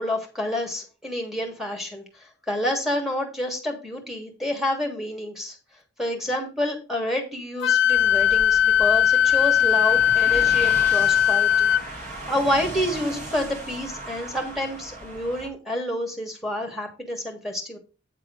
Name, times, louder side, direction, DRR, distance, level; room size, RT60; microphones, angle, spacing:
voice 1, 0.0-5.6 6.0-17.8, left 1 dB, ahead, 2 dB, 1.9 m, -29 dB
Wind instrument woodwind instrument, 7.6-11.8, left 10 dB, 65° left, 0.4 m, -19 dB
sound 1, 7.9-15.5, right 2 dB, 40° right, 1.9 m, -37 dB
9.1 x 3.6 x 6.3 m, 0.32 s
head